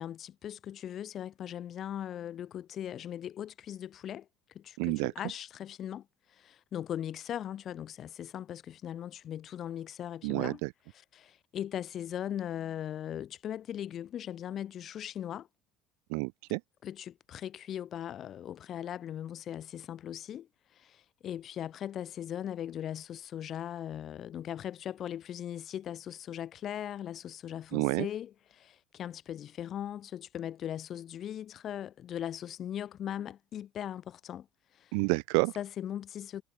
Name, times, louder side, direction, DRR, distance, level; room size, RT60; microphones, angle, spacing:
voice 1, 0.0-4.3 4.5-10.6 10.9-15.5 16.8-34.5 34.7-35.0 35.6-36.4, left 10 dB, 40° left, 0.8 m, -39 dB
voice 2, 4.8-5.1 10.2-10.7 16.1-16.6 27.7-28.1 34.9-35.5, right 40 dB or more, 90° right, 0.6 m, -29 dB
cardioid pair, 145°, 0 cm